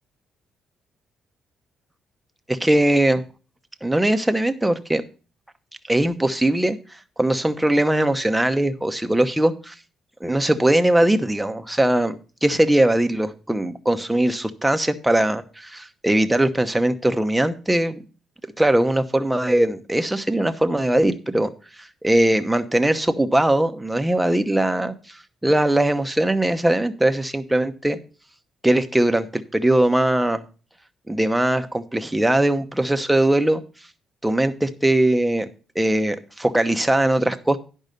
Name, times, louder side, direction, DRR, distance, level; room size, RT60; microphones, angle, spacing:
voice 1, 2.5-3.2 3.8-5.0 5.9-6.8 7.2-9.7 10.2-18.0 18.6-21.5 22.0-28.0 28.6-30.4 31.1-33.6 34.2-35.5 35.7-37.6, right 1 dB, 5° right, 8 dB, 0.9 m, -20 dB
10.5 x 5.5 x 5.3 m, 0.35 s
cardioid pair, 90°, 0 cm